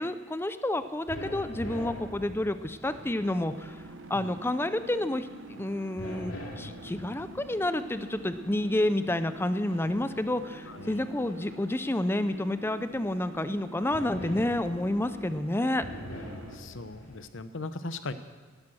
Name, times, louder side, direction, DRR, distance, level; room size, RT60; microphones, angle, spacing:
voice 1, 0.0-3.8 4.1-15.8, left 1 dB, 10° left, 11 dB, 0.6 m, -29 dB
sound 1, 0.8-17.2, left 1 dB, 85° left, 2.9 m, -46 dB
sound 2, 2.8-16.6, right 1 dB, 75° right, 1.0 m, -47 dB
voice 2, 10.7-11.0 16.5-18.1, left 3 dB, 65° left, 11 dB, 0.9 m, -39 dB
18.5 x 10.5 x 6.3 m, 1.4 s
head